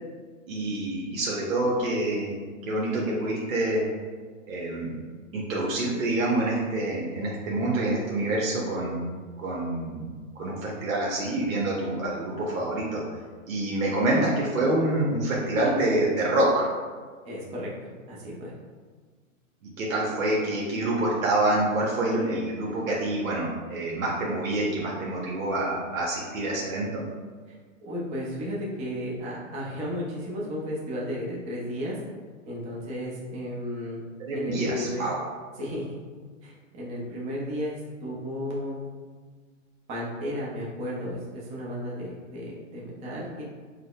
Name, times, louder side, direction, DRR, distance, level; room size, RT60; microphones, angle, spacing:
voice 1, 0.5-2.3 2.7-3.9 4.4-5.0 5.3-9.0 9.4-10.1 10.4-13.0 13.5-16.7 19.6-27.0 34.2-35.2, right 1 dB, 80° right, -4 dB, 0.9 m, -27 dB
voice 2, 17.2-18.5 27.5-27.6 27.8-32.0 32.5-34.0 34.3-35.1 35.6-36.0 36.4-38.8 39.9-43.4, equal, 15° right, -5 dB, 0.5 m, -34 dB
4.8 x 2.1 x 2.3 m, 1.6 s
hypercardioid pair, 135°, 39 cm